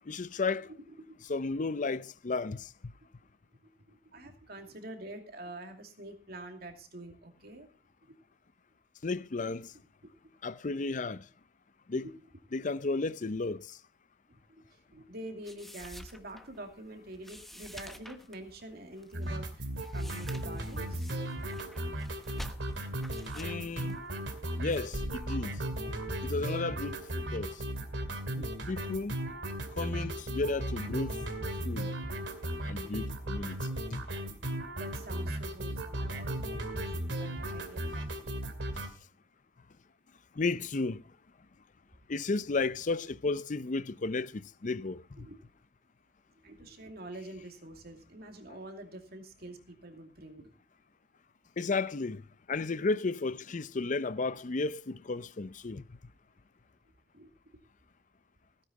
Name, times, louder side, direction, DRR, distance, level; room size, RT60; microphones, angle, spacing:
voice 1, 0.1-0.7 1.3-2.9 9.0-9.7 10.4-11.2 11.9-12.1 12.5-13.8 23.3-24.0 24.6-25.5 26.2-27.6 28.3-29.2 29.7-31.2 31.6-31.9 32.6-34.0 40.4-41.0 42.1-45.3 51.6-55.8, left 3 dB, 45° left, 0.6 m, -33 dB
voice 2, 0.6-1.2 3.9-7.7 14.3-14.6 14.9-21.2 32.8-33.0 34.8-38.6 45.2-45.4 46.4-50.5 57.1-57.3, right 1 dB, 60° right, 2.6 m, -47 dB
sound 1, 15.4-26.3, equal, ahead, 1.0 m, -48 dB
reggae sample, 19.1-38.9, right 1 dB, 80° right, 2.4 m, -36 dB
16.5 x 9.9 x 4.1 m
head